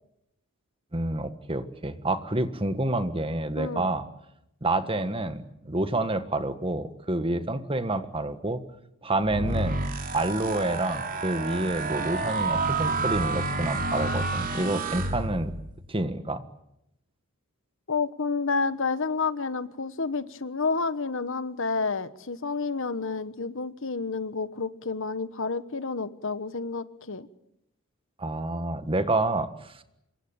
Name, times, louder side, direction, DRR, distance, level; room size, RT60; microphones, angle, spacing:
voice 1, 0.9-4.1 4.6-8.6 9.0-9.8 10.1-15.5 15.9-16.4 28.2-29.8, right 2 dB, 25° right, 10 dB, 1.6 m, -28 dB
voice 2, 3.6-3.9 17.9-27.3, left 4 dB, 60° left, 14 dB, 1.2 m, -30 dB
sound 1, 9.2-15.7, right 3 dB, 40° right, 3.7 m, -29 dB
26.0 x 23.0 x 8.9 m, 0.82 s
head